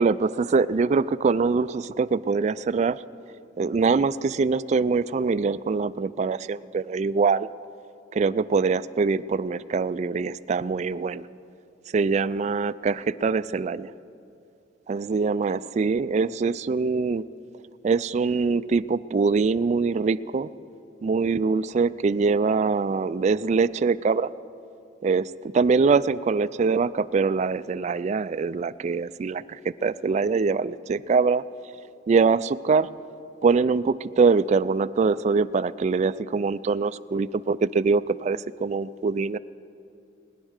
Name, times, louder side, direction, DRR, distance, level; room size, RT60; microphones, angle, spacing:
voice 1, 0.0-3.0 3.6-7.5 8.1-11.3 11.9-13.9 14.9-17.2 17.8-20.5 21.0-24.3 25.0-31.4 32.1-32.9 33.4-39.4, right 4 dB, 40° right, 15 dB, 0.3 m, -23 dB
20.0 x 10.0 x 6.5 m, 2.6 s
head